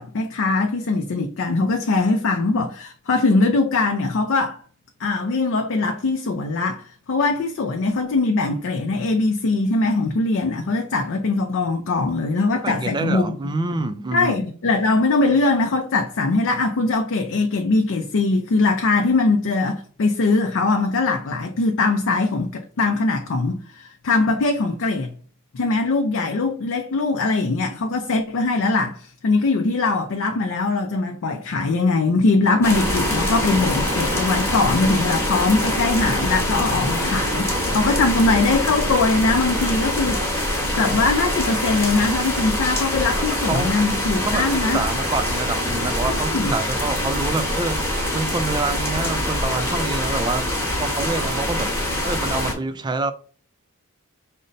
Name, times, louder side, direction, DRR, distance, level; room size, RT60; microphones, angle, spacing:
voice 1, 0.0-4.6 5.0-13.3 14.1-25.1 25.5-40.5 40.8-44.8 46.1-46.5, left 3 dB, 60° left, 0.4 m, -21 dB
voice 2, 12.6-14.5 43.1-43.8 44.2-51.7 52.0-53.1, right 3 dB, 20° right, 0.3 m, -27 dB
sound 1, 32.6-52.5, left 1 dB, 10° left, 1.0 m, -24 dB
5.2 x 2.1 x 3.9 m
head